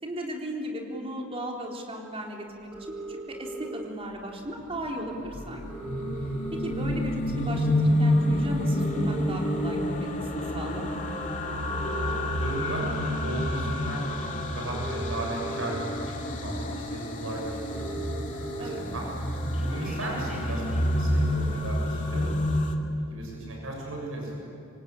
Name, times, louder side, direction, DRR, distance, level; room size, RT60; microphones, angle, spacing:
voice 1, 0.0-2.7 3.1-5.6 6.5-10.9 18.6-18.8, equal, 30° right, 0 dB, 3.8 m, -36 dB
sound 1, 2.7-3.7 4.9-5.0 5.3-5.4 5.5-7.0 7.5-7.7 8.5-9.7 10.4-10.6 11.6-12.7 13.9-14.0 14.5-15.7 16.4-16.5 16.8-16.9 17.1-17.2 17.4-18.7 19.0-21.2, right 2 dB, ahead, 7.6 m, -39 dB
sound 2, 4.7-22.8, left 1 dB, 40° left, 2.3 m, -29 dB
voice 2, 12.2-18.0 18.6-19.1 19.5-22.6 23.1-24.4, right 1 dB, 70° right, -1 dB, 7.6 m, -36 dB
26.5 x 24.5 x 8.9 m, 2.6 s
head